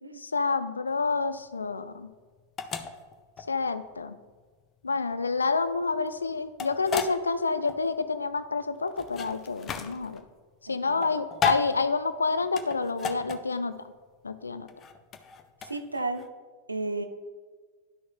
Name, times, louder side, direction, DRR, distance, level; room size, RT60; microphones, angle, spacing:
voice 1, 0.2-2.1 3.5-4.2 4.8-10.2 10.6-13.8 14.2-14.7, left 4 dB, 75° left, 12 dB, 0.4 m, -28 dB
sound 1, 0.9-16.3, left 6 dB, 25° left, 0.6 m, -35 dB
voice 2, 10.7-11.2 15.6-16.2 16.7-17.0, right 2 dB, 80° right, 7 dB, 0.7 m, -33 dB
11.5 x 6.2 x 2.2 m, 1.5 s
figure-of-eight pair, 90°, 0 cm